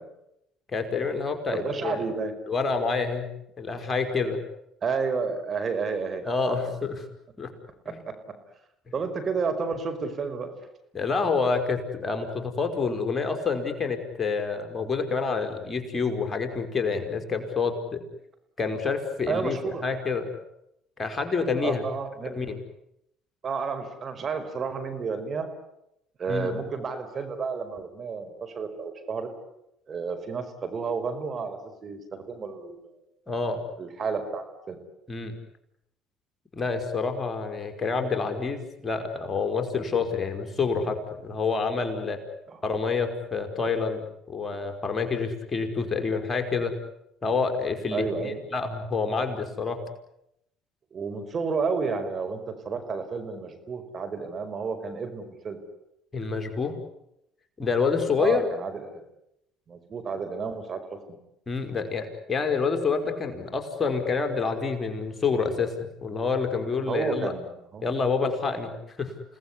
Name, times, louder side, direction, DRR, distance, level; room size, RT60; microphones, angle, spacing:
voice 1, 0.7-2.0 2.5-3.3 3.6-4.4 6.2-7.0 7.4-7.5 7.9-8.0 10.9-18.0 18.6-20.3 21.0-21.8 22.2-22.6 26.3-26.5 33.3-33.6 35.1-35.4 36.5-42.2 42.6-46.7 47.2-49.8 56.1-56.8 57.6-58.4 61.5-67.3 67.8-68.7 69.0-69.1, left 4 dB, 30° left, 6 dB, 5.2 m, -28 dB
voice 2, 1.5-2.3 4.8-6.6 8.9-10.5 19.3-19.8 21.6-22.4 23.4-25.5 26.2-29.3 29.9-33.0 33.8-34.8 42.5-42.6 46.1-46.3 47.9-48.4 50.9-52.4 52.7-55.6 58.2-59.0 59.7-61.0 66.9-67.5 67.7-67.8, right 5 dB, 40° right, 7 dB, 5.3 m, -31 dB
29.5 x 19.0 x 10.0 m, 0.83 s
hypercardioid pair, 65°, 0 cm